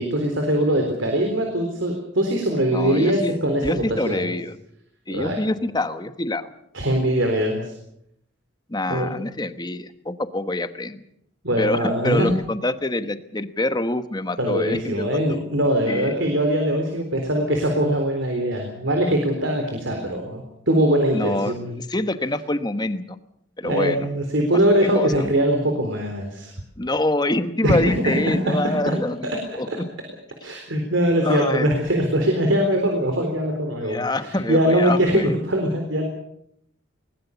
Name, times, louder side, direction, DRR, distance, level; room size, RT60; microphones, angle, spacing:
voice 1, 0.0-4.3 5.1-5.4 6.7-7.7 8.9-9.2 11.4-12.3 14.4-21.8 23.6-26.5 27.6-28.9 29.5-29.8 30.4-36.0, right 1 dB, 70° right, 3 dB, 3.9 m, -22 dB
voice 2, 2.7-3.3 3.6-4.6 5.1-6.5 8.7-11.0 11.6-15.4 15.9-16.2 21.1-23.2 23.6-24.1 24.9-25.3 26.8-29.7 31.2-31.7 33.8-35.3, left 1 dB, 20° left, 10 dB, 1.2 m, -26 dB
21.0 x 20.0 x 7.1 m, 0.75 s
head